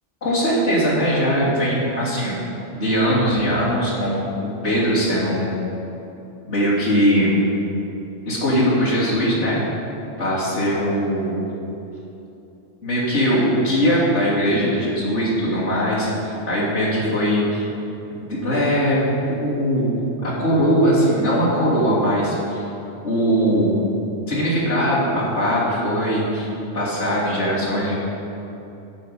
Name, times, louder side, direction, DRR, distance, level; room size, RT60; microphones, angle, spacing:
voice 1, 0.2-2.4 2.7-5.6 6.4-7.4 8.2-9.6 10.2-11.4 12.8-17.7 18.1-19.9 20.2-22.6 23.0-23.8 24.3-27.9, equal, 70° left, -8 dB, 3.4 m, -20 dB
9.7 x 6.1 x 8.0 m, 2.9 s
omnidirectional pair, 1.2 m